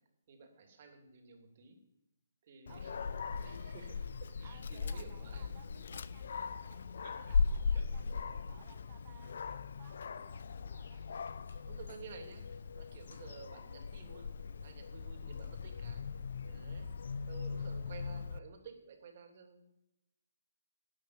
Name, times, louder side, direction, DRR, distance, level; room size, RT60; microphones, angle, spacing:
voice 1, 0.3-1.8 2.4-3.0 3.4-5.5 7.0-7.2 7.7-7.8 10.8-11.2 11.7-14.3 14.6-16.1 16.4-16.9 17.3-19.7, right 5 dB, 50° right, 5 dB, 3.0 m, -53 dB
Dog, 2.7-18.4, left 5 dB, 65° left, 0.7 m, -39 dB
voice 2, 2.7-3.5 4.4-11.0, right 9 dB, 30° right, 4 dB, 1.1 m, -61 dB
sound 1, 11.3-14.0 14.4-16.1, left 3 dB, 85° left, 3.6 m, -70 dB
12.0 x 8.8 x 8.9 m, 0.87 s
hypercardioid pair, 150°, 0 cm